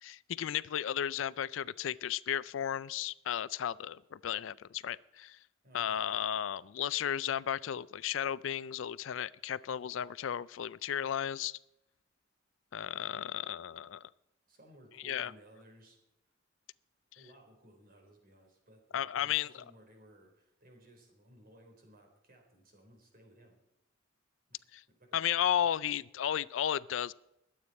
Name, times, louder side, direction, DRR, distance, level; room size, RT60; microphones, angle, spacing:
voice 1, 0.0-5.4 5.7-11.6 12.7-14.0 15.0-15.3 18.9-19.5 24.7-24.8 25.1-27.1, left 9 dB, 70° left, 19 dB, 0.4 m, -34 dB
voice 2, 5.6-6.3 14.5-16.0 17.2-23.6 24.5-24.6 24.9-25.7, right 1 dB, 50° right, 2 dB, 3.9 m, -59 dB
21.5 x 8.7 x 4.2 m, 0.86 s
head